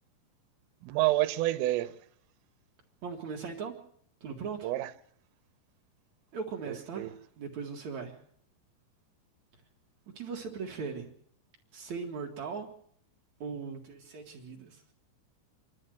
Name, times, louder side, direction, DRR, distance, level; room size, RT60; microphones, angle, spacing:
voice 1, 0.8-2.0 4.6-4.9 6.7-7.1, right 16 dB, 80° right, 3.6 m, -29 dB
voice 2, 3.0-3.8 4.2-4.7 6.3-8.2 10.1-11.1 11.7-12.7 13.4-14.8, right 5 dB, 50° right, 2.2 m, -39 dB
28.0 x 12.5 x 7.8 m
omnidirectional pair, 5.9 m